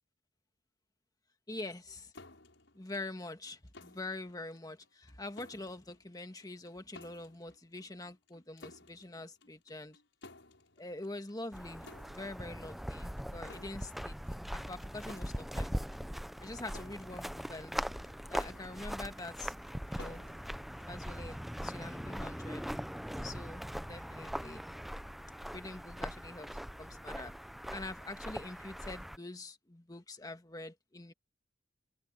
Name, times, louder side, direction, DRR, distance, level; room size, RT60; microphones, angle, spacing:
voice 1, 1.5-2.1 2.7-10.0 10.8-14.2 14.5-15.7 16.4-17.9 18.3-20.2 20.9-22.6 23.1-24.6 25.4-26.5 26.8-27.3 27.7-31.1, left 2 dB, 20° left, 1.5 m, -45 dB
sound 1, 2.1-21.5, left 2 dB, 75° left, 6.3 m, -58 dB
sound 2, 11.5-29.2, equal, ahead, 0.4 m, -41 dB
head